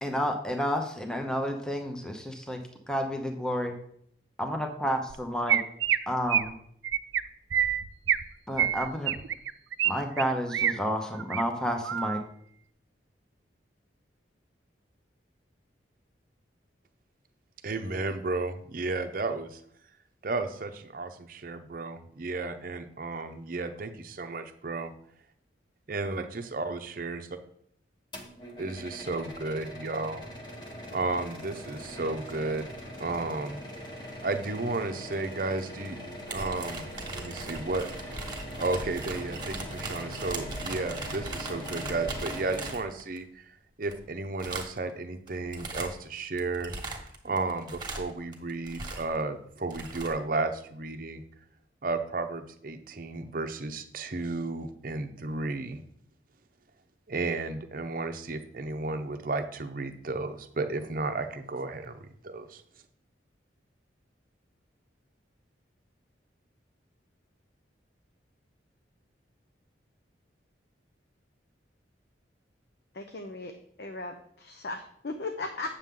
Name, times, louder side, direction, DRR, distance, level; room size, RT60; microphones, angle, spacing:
voice 1, 0.0-2.6 2.9-3.7 4.4-5.6 6.1-6.5 8.5-9.1 9.8-12.2, equal, 5° left, 3 dB, 0.8 m, -30 dB
Chirp tweet, 5.1-5.2 5.5-6.0 6.3-6.5 6.8-7.2 7.5-8.2 8.6-9.9 10.2-10.7 11.1-11.4 11.8-12.2, right 9 dB, 80° right, 0.5 m, -26 dB
voice 2, 17.6-19.6 20.2-24.9 25.9-27.4 28.6-30.2 30.9-32.7 33.0-33.6 34.2-36.0 36.3-38.1 38.6-43.5 43.8-46.7 47.2-51.2 51.8-55.8 57.1-62.6, right 3 dB, 50° right, 8 dB, 0.7 m, -33 dB
sound 1, 28.1-42.7, equal, 25° left, 1.2 m, -42 dB
sound 2, 36.3-43.2 43.9-44.0 44.4-44.9 45.3-46.0 46.4-49.2 49.6-50.1, right 3 dB, 25° right, 1.4 m, -39 dB
voice 3, 72.9-75.8, left 2 dB, 60° left, 5 dB, 0.7 m, -37 dB
8.9 x 6.7 x 3.7 m, 0.67 s
head